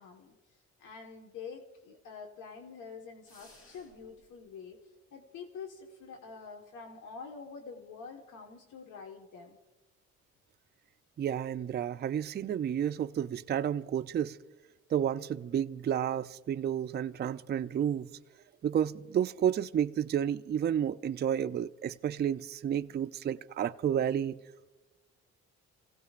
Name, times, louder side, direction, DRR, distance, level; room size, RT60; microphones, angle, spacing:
voice 1, 0.0-4.8 5.1-9.6, left 5 dB, 80° left, 1.4 m, -47 dB
sound 1, 3.2-4.2, left 1 dB, 45° left, 3.8 m, -58 dB
voice 2, 11.2-14.4 14.9-18.1 18.6-24.4, right 9 dB, 35° right, 0.4 m, -31 dB
30.0 x 16.5 x 2.5 m
cardioid pair, 90°, 30 cm